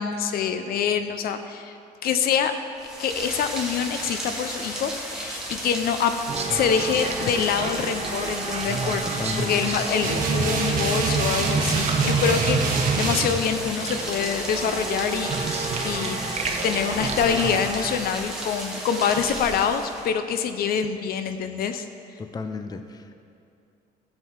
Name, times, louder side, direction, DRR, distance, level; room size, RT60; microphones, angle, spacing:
voice 1, 0.0-1.8 2.0-2.5 3.0-6.1 6.5-16.2 16.6-21.9, left 7 dB, 65° left, 9 dB, 0.7 m, -25 dB
Rain, 2.8-20.2, right 1 dB, 5° right, 1.8 m, -34 dB
sound 1, 6.3-18.0, right 4 dB, 40° right, 1.0 m, -30 dB
voice 2, 9.2-9.6 22.2-23.1, left 4 dB, 25° left, 8 dB, 0.5 m, -33 dB
sound 2, 10.0-13.3, right 4 dB, 55° right, 1.4 m, -25 dB
12.5 x 7.7 x 4.6 m, 2.6 s
cardioid pair, 110°, 17 cm